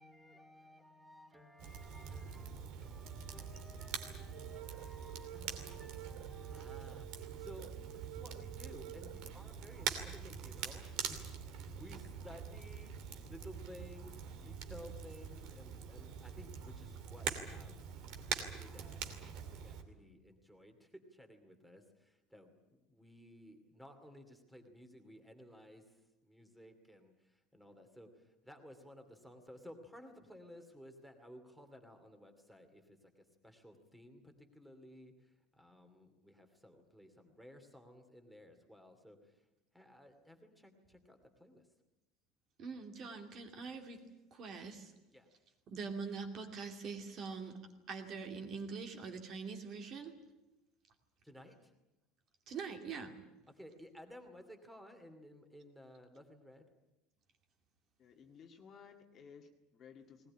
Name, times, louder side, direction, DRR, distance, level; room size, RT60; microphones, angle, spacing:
voice 1, 0.0-12.9 13.3-17.9 18.3-39.4 39.7-41.7 45.1-45.3 51.2-51.7 53.5-56.7, equal, ahead, 6 dB, 2.5 m, -56 dB
Crackle, 1.6-19.8, right 7 dB, 50° right, 2.7 m, -44 dB
sound 1, 4.3-9.3, right 16 dB, 90° right, 1.1 m, -51 dB
voice 2, 42.6-44.9 45.7-50.2 52.5-53.2, right 5 dB, 35° right, 5 dB, 2.5 m, -44 dB
voice 3, 58.0-60.3, left 6 dB, 30° left, 4 dB, 1.9 m, -57 dB
20.0 x 20.0 x 9.9 m, 1.0 s
cardioid pair, 175°, 0 cm